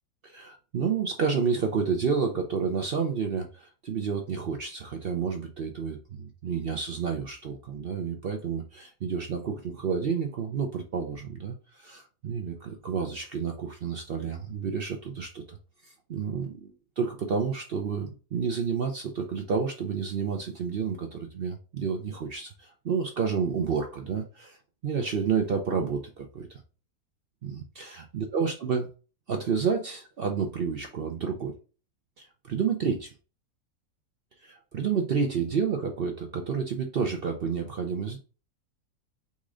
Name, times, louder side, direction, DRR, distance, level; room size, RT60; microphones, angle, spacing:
voice 1, 0.2-15.6 15.8-24.6 24.8-26.6 27.4-28.9 29.3-31.6 32.2-33.1 34.4-38.2, right 6 dB, 60° right, 3 dB, 0.6 m, -30 dB
4.1 x 2.5 x 4.8 m, 0.35 s
omnidirectional pair, 1.6 m